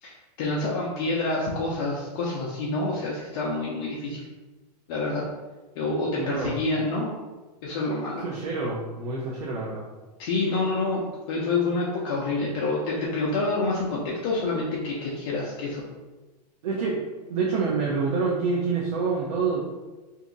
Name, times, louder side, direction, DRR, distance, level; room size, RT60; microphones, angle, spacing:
voice 1, 0.0-4.3 4.9-5.2 5.7-7.1 7.6-8.2 10.2-15.9, left 2 dB, 35° left, -4 dB, 0.5 m, -27 dB
voice 2, 6.2-6.6 8.2-9.9 16.6-17.0 17.3-19.6, right 4 dB, 60° right, -4 dB, 0.8 m, -27 dB
2.8 x 2.6 x 3.8 m, 1.2 s
supercardioid pair, 160°, 21 cm